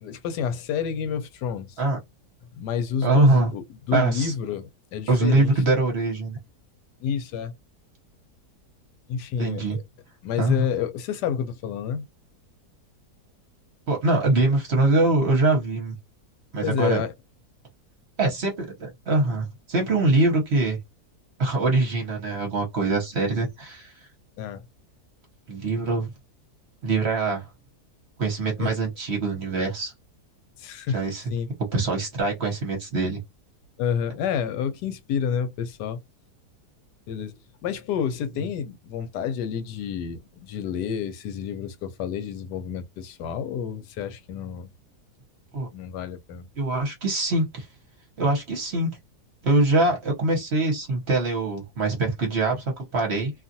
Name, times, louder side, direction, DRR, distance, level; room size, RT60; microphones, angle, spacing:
voice 1, 0.0-1.7 2.5-5.5 7.0-7.5 9.1-9.8 10.2-12.1 16.6-17.1 24.4-24.6 28.6-28.7 30.6-31.0 31.3-31.5 33.8-36.0 37.1-44.7 45.7-46.5, left 7 dB, 85° left, 1.2 m, -29 dB
voice 2, 3.0-3.5 3.9-4.3 5.1-6.4 9.4-9.8 10.4-10.7 13.9-15.9 16.5-17.0 18.2-20.8 21.4-23.9 25.5-26.1 26.8-27.4 28.2-29.9 30.9-31.3 31.7-33.2 45.5-45.7 46.6-47.7 48.2-48.9 49.4-53.3, right 2 dB, 45° right, 1.0 m, -23 dB
2.7 x 2.4 x 2.6 m
omnidirectional pair, 1.7 m